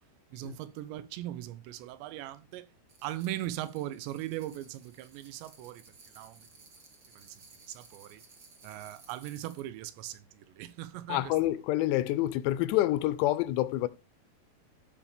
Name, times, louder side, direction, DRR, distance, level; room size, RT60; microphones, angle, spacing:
voice 1, 0.3-2.7 3.0-6.5 7.2-7.4 7.7-8.2 8.6-11.3, right 14 dB, 85° right, 3.0 m, -39 dB
sound 1, 2.9-9.7, right 4 dB, 40° right, 1.7 m, -57 dB
voice 2, 11.1-13.9, left 15 dB, 85° left, 2.7 m, -27 dB
14.5 x 4.9 x 3.4 m
omnidirectional pair, 5.0 m